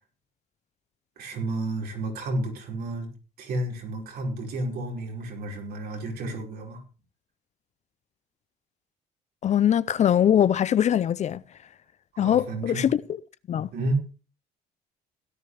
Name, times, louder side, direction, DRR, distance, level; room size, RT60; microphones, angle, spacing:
voice 1, 1.2-3.1 3.4-6.8 12.1-12.9 13.7-14.0, right 2 dB, 70° right, 5.0 m, -31 dB
voice 2, 9.4-11.4 12.2-13.0 13.5-13.7, left 10 dB, 45° left, 0.5 m, -22 dB
17.0 x 10.5 x 3.4 m
cardioid pair, 110°, 17 cm